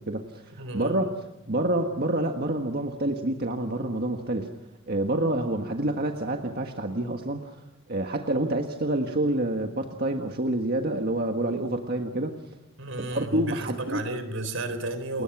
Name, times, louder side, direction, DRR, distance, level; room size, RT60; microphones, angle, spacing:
voice 1, 0.1-1.1 1.5-4.5 4.9-7.6 7.9-12.3 13.0-14.0 15.1-15.2, right 1 dB, 50° right, 4 dB, 1.6 m, -28 dB
voice 2, 0.6-1.1 12.8-15.2, right 2 dB, 80° right, 11 dB, 3.9 m, -33 dB
30.0 x 21.5 x 6.1 m, 0.87 s
head